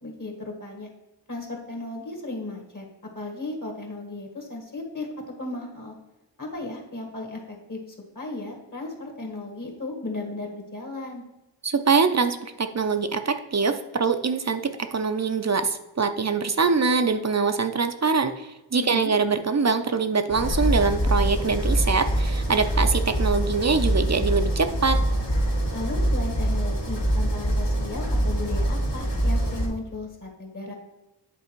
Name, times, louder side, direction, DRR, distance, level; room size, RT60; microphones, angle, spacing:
voice 1, 0.0-0.9 1.3-2.8 3.1-5.1 5.4-5.9 6.4-7.8 8.1-11.2 18.8-19.1 25.7-30.7, left 2 dB, 45° left, 1 dB, 1.6 m, -35 dB
voice 2, 11.6-25.0, right 4 dB, 40° right, 9 dB, 0.6 m, -24 dB
sound 1, 20.3-29.7, right 1 dB, 65° left, 1.8 m, -24 dB
8.2 x 3.5 x 4.5 m, 1.0 s
cardioid pair, 45°, 44 cm